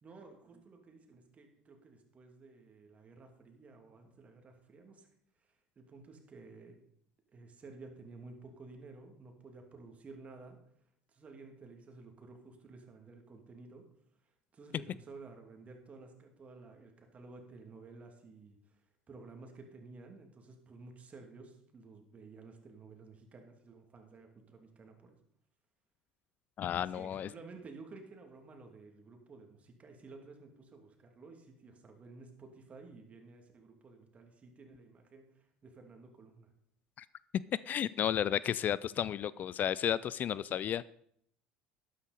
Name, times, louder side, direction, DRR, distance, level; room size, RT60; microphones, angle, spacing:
voice 1, 0.0-5.1 5.8-6.8 7.3-10.6 11.1-13.9 14.5-18.6 19.1-25.2 26.8-35.3 35.6-36.5, right 3 dB, 35° right, 4 dB, 2.7 m, -53 dB
voice 2, 26.6-27.3 37.0-37.1 37.5-40.9, left 10 dB, 45° left, 20 dB, 0.3 m, -33 dB
12.5 x 9.8 x 4.2 m, 0.68 s
hypercardioid pair, 70°, 4 cm